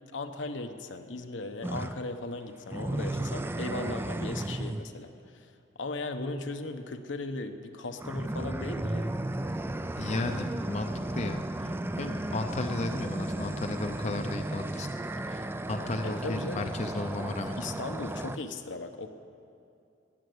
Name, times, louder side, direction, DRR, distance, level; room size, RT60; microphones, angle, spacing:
voice 1, 0.1-5.5 5.8-9.2 16.0-16.7 17.6-19.1, left 2 dB, 80° left, 6 dB, 0.9 m, -37 dB
sound 1, 1.6-2.0 2.7-4.9 7.9-18.4, right 1 dB, 10° right, 0.4 m, -34 dB
voice 2, 10.0-14.9 15.3-17.5, left 2 dB, 35° left, 6 dB, 0.6 m, -34 dB
16.0 x 9.6 x 7.9 m, 2.5 s
head